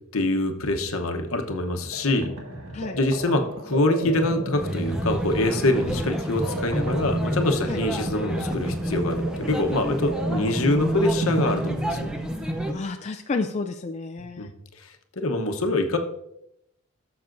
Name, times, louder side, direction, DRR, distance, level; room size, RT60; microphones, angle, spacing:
voice 1, 0.1-2.3 2.9-12.1 14.4-14.5 14.8-14.9 15.2-16.0, left 2 dB, 65° left, 5 dB, 0.9 m, -25 dB
sound 1, 1.6-12.5, right 1 dB, 75° right, 1.6 m, -34 dB
sound 2, 4.5-12.7, right 1 dB, 5° right, 0.6 m, -29 dB
voice 2, 12.7-14.5, left 3 dB, 30° left, 4 dB, 0.3 m, -31 dB
15.0 x 6.9 x 2.6 m, 0.81 s
head